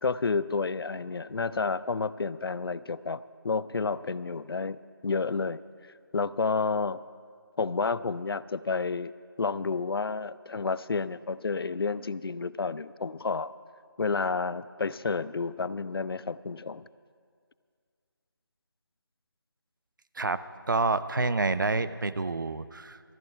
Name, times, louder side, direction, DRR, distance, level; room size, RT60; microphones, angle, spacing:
voice 1, 0.0-4.8 5.0-5.6 6.1-7.0 7.6-13.5 14.0-16.8, left 4 dB, 75° left, 17 dB, 0.4 m, -30 dB
voice 2, 20.7-23.1, right 3 dB, 55° right, 13 dB, 0.5 m, -28 dB
13.5 x 7.9 x 7.2 m, 2.1 s
figure-of-eight pair, 175°, 12 cm